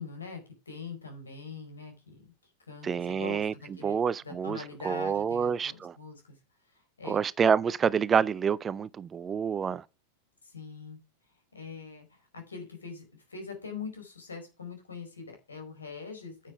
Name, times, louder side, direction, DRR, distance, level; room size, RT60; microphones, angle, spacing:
voice 1, 0.0-2.3 2.7-4.0 4.2-6.4 6.7-7.2 10.4-11.0 11.5-13.0 13.3-16.5, left 5 dB, 75° left, 4.6 m, -43 dB
voice 2, 2.8-3.5 3.8-5.9 7.0-9.8, right 7 dB, 20° right, 0.4 m, -28 dB
9.8 x 7.4 x 4.9 m
figure-of-eight pair, 90°, 0 cm